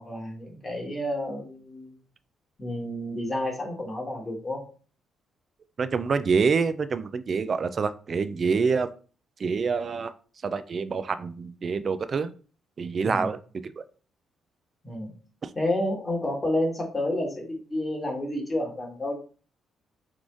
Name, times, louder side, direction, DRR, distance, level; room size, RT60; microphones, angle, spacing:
voice 1, 0.0-1.9 2.6-4.6 13.0-13.3 14.8-15.1 15.5-19.2, left 1 dB, 25° left, 0 dB, 1.7 m, -30 dB
voice 2, 5.8-8.9 9.4-10.1 10.4-12.3 12.8-13.8 15.4-15.5, right 5 dB, 45° right, 12 dB, 0.4 m, -26 dB
4.0 x 3.1 x 3.6 m, 0.38 s
cardioid pair, 90°, 0 cm